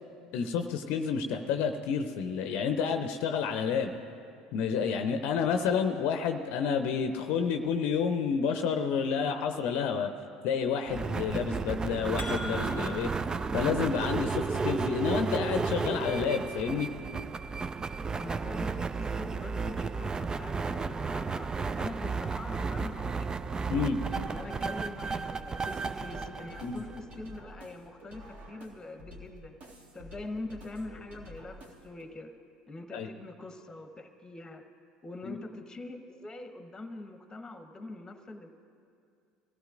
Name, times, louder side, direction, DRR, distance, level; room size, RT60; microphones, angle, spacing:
voice 1, 0.3-3.9 4.5-10.1 10.4-13.1 13.5-16.9 23.7-24.0 26.6-26.8 32.9-33.1 35.2-35.4, left 6 dB, 55° left, 7 dB, 0.7 m, -29 dB
sound 1, 10.9-27.4, right 4 dB, 20° right, 0.4 m, -33 dB
sound 2, 12.2-13.2, left 1 dB, 65° right, 3.5 m, -40 dB
voice 2, 18.2-23.3 24.1-29.5 29.9-32.3 32.7-34.6 35.0-38.5, left 2 dB, 15° left, 7 dB, 1.3 m, -43 dB
sound 3, 24.1-32.1, left 1 dB, 50° right, 2.2 m, -50 dB
22.0 x 15.5 x 2.6 m, 2.4 s
figure-of-eight pair, 70°, 3 cm